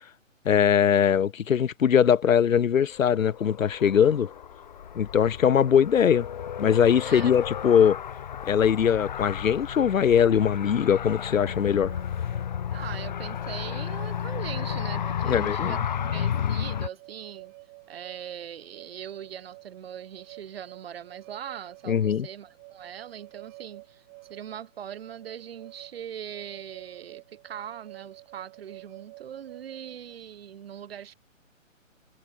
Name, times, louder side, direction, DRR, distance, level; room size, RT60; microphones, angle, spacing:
voice 1, 0.4-4.3 5.0-6.3 6.6-8.0 8.4-11.9 15.3-15.8 21.9-22.3, left 8 dB, 80° left, 0.7 m, -21 dB
Car, 2.9-16.9, left 9 dB, 35° left, 0.6 m, -33 dB
voice 2, 7.0-7.3 12.7-17.5 17.9-31.1, right 9 dB, 50° right, 5.6 m, -41 dB
sound 1, 11.4-30.1, right 27 dB, 20° right, 2.9 m, -50 dB
figure-of-eight pair, 140°, 39 cm